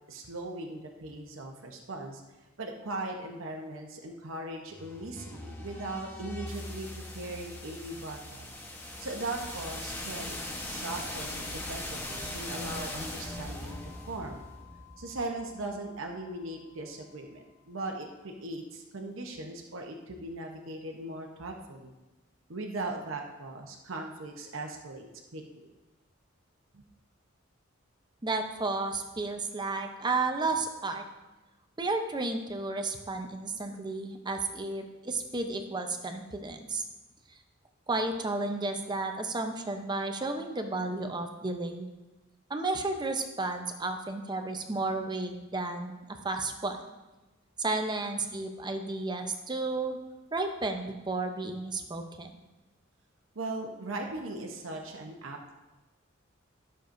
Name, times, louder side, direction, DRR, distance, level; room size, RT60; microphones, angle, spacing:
voice 1, 0.1-2.2 2.6-8.6 9.0-10.3 10.7-13.8 14.1-14.4 15.0-21.9 22.5-25.7 26.7-26.8 53.3-55.5, right 2 dB, 80° right, 2 dB, 0.9 m, -39 dB
sound 1, 4.7-16.6, left 1 dB, 10° left, 1.0 m, -40 dB
voice 2, 28.2-31.0 31.8-36.8 37.9-41.9 42.5-46.8 47.6-50.0 50.3-52.3, right 3 dB, 20° right, 5 dB, 0.7 m, -32 dB
13.0 x 6.7 x 2.6 m, 1.1 s
head